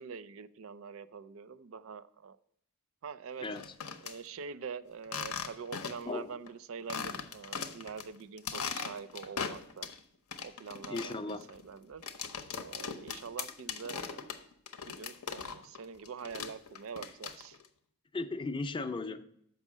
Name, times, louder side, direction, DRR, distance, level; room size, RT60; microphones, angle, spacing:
voice 1, 0.0-2.4 3.0-3.5 4.0-9.9 10.4-11.2 11.5-12.1 12.5-14.3 14.9-17.6, right 6 dB, 65° right, 0.4 m, -45 dB
sound 1, 3.4-4.2 5.0-6.2 6.5-6.6 6.9-8.0 8.4-10.0 10.3-17.7, left 6 dB, 85° left, 0.8 m, -39 dB
voice 2, 3.4-3.7 6.1-6.4 10.9-11.5 18.1-19.3, left 3 dB, 20° left, 0.4 m, -36 dB
6.8 x 5.4 x 7.2 m
head